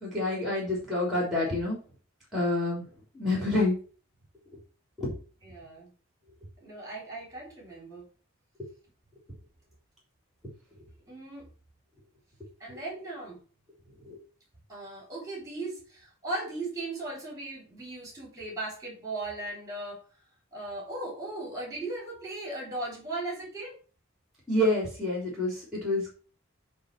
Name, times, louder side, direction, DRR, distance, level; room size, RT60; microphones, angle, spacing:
voice 1, 0.0-1.8 2.3-2.8 3.1-3.8 5.0-5.1 14.1-14.2 24.5-26.1, left 1 dB, ahead, -3 dB, 3.4 m, -28 dB
voice 2, 5.4-5.9 6.6-8.1 11.1-11.5 12.6-13.4 14.7-20.0 20.5-23.8, right 2 dB, 15° right, -2 dB, 3.9 m, -37 dB
8.6 x 3.7 x 5.9 m, 0.37 s
head